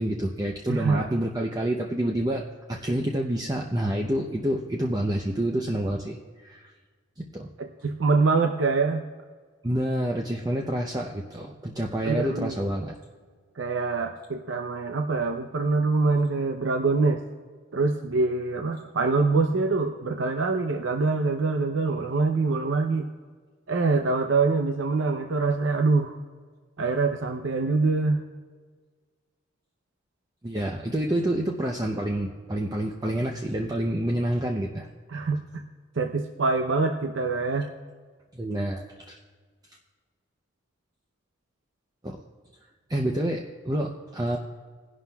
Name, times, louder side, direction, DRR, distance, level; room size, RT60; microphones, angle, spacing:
voice 1, 0.0-6.2 6.4-6.7 7.3-7.5 9.6-13.0 30.4-34.9 38.3-39.2 42.0-42.2 42.9-44.4, right 1 dB, 20° right, 1 dB, 0.6 m, -28 dB
voice 2, 0.7-1.1 7.6-9.0 12.0-12.6 13.6-17.2 17.7-23.1 23.7-26.1 26.8-28.2 35.1-35.4 36.0-37.7, right 3 dB, 70° right, 4 dB, 0.6 m, -24 dB
20.5 x 11.0 x 2.3 m, 1.5 s
head